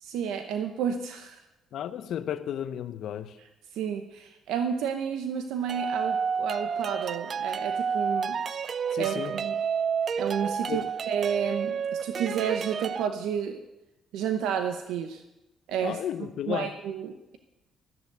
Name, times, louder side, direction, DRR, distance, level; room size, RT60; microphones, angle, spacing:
voice 1, 0.0-1.4 3.7-8.4 9.0-9.6 10.2-13.6 14.1-15.2 15.7-16.0 16.5-17.4, right 8 dB, 90° right, 6 dB, 0.8 m, -31 dB
voice 2, 1.7-3.4 8.9-9.4 10.7-10.9 15.8-16.8, left 10 dB, 75° left, 12 dB, 0.7 m, -33 dB
sound 1, 5.7-13.1, right 6 dB, 50° right, 0.4 m, -30 dB
13.5 x 7.0 x 7.9 m, 0.98 s
cardioid pair, 90°, 0 cm